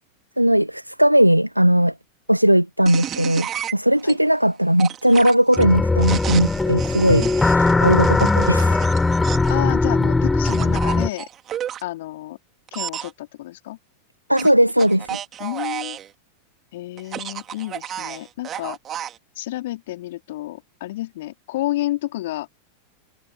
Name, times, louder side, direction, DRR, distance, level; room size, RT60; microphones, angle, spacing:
voice 1, 0.4-1.9 2.3-8.9 14.3-15.2, equal, 90° right, 1.4 m, -18 dB
sound 1, 2.9-4.1 4.8-9.6 10.4-11.8 12.7-13.1 14.4-16.1 17.0-19.2, right 10 dB, 30° right, 3.9 m, -32 dB
sound 2, 5.6-11.1, left 3 dB, 10° left, 4.0 m, -19 dB
voice 2, 9.5-11.3 11.8-12.4 12.7-13.8 15.4-16.0 16.7-18.8 19.3-22.5, left 16 dB, 55° left, 3.4 m, -30 dB
figure-of-eight pair, 90°, 0 cm